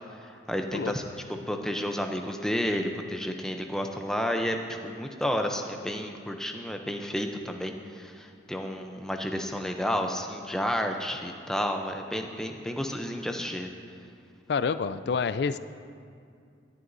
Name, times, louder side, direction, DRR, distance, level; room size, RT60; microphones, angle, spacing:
voice 1, 0.2-1.0 1.3-13.7, equal, 5° left, 4 dB, 0.5 m, -31 dB
voice 2, 14.5-15.6, left 5 dB, 60° left, 13 dB, 0.3 m, -28 dB
19.0 x 11.0 x 2.6 m, 2.3 s
head